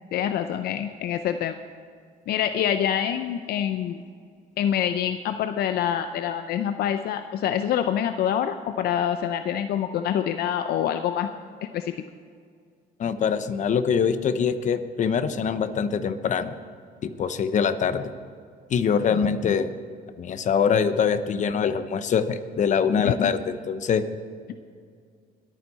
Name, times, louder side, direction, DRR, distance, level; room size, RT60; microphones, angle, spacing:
voice 1, 0.1-1.6 2.3-4.0 4.6-11.3 11.6-12.0 19.1-19.4 23.0-23.1, left 9 dB, 65° left, 9 dB, 0.6 m, -26 dB
voice 2, 13.0-16.5 17.0-18.1 18.7-19.7 20.2-24.0, left 6 dB, 45° left, 11 dB, 0.9 m, -24 dB
22.0 x 9.3 x 4.2 m, 2.1 s
cardioid pair, 110°, 17 cm